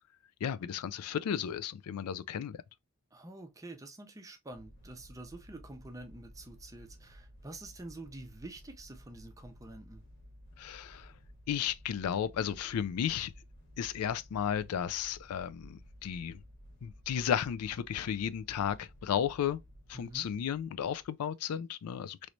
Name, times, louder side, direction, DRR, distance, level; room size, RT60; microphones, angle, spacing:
voice 1, 0.4-2.6 10.6-11.1 11.5-13.3 13.8-16.4 16.8-19.6 19.9-22.3, left 8 dB, 85° left, 0.3 m, -34 dB
voice 2, 3.1-10.0 19.9-20.3, right 2 dB, 15° right, 0.5 m, -47 dB
sound 1, 4.5-21.1, equal, 50° left, 1.2 m, -55 dB
3.1 x 3.0 x 2.5 m
head